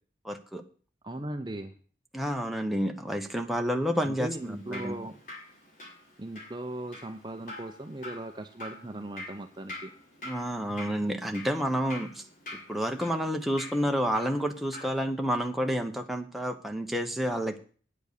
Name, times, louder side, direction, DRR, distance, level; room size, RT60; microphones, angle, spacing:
voice 1, 0.2-0.6 2.1-5.0 10.2-12.2 12.7-17.6, equal, ahead, 3 dB, 1.0 m, -29 dB
voice 2, 1.0-1.7 4.0-5.2 6.2-9.9, right 1 dB, 25° right, 6 dB, 0.7 m, -38 dB
Drip, 4.3-14.9, left 2 dB, 45° left, 4.8 m, -46 dB
9.5 x 8.0 x 6.7 m, 0.42 s
head